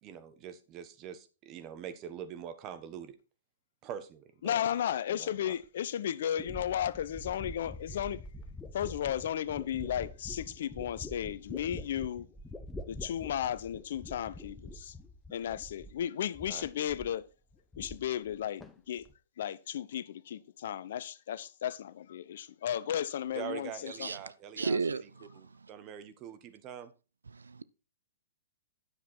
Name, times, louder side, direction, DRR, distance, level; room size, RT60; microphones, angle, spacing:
voice 1, 0.0-3.2 3.8-4.7 5.1-5.5 15.5-15.6 16.5-16.7 23.3-25.0 25.3-26.9, right 9 dB, 35° right, 1.3 m, -44 dB
voice 2, 4.4-8.2 8.7-12.3 12.9-14.9 15.3-17.2 17.8-19.0 19.4-24.1, left 10 dB, 60° left, 0.6 m, -34 dB
sound 1, 5.6-5.7 6.4-16.1 16.3-17.2 17.5-18.4 18.6-19.1, left 1 dB, 10° left, 0.9 m, -46 dB
voice 3, 24.6-25.7 27.3-27.6, right 4 dB, 85° right, 0.5 m, -34 dB
10.0 x 7.2 x 4.4 m
hypercardioid pair, 115°, 0 cm